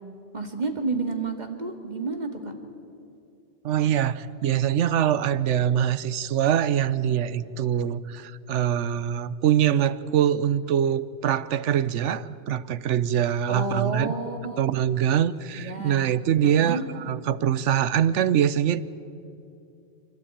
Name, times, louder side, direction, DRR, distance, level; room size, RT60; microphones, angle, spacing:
voice 1, 0.3-2.5 13.5-14.6 15.5-16.0 16.4-16.8, right 3 dB, 35° right, 4 dB, 2.1 m, -30 dB
voice 2, 3.6-14.2 14.6-18.8, right 10 dB, 80° right, 16 dB, 1.0 m, -24 dB
27.5 x 13.5 x 8.8 m, 2.6 s
omnidirectional pair, 1.2 m